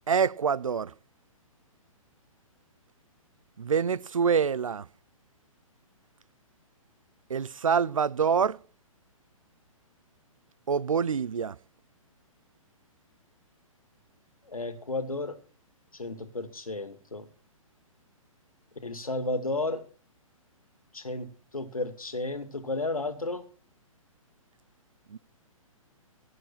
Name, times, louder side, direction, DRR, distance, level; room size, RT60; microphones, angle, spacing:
voice 1, 0.1-0.9 3.6-4.9 7.3-8.6 10.7-11.6 25.1-25.2, right 6 dB, 70° right, 0.5 m, -26 dB
voice 2, 14.4-15.4 15.9-17.3 18.8-19.8 20.9-21.3 21.5-23.4, left 2 dB, 80° left, 2.1 m, -33 dB
17.0 x 7.7 x 5.8 m
figure-of-eight pair, 125°, 18 cm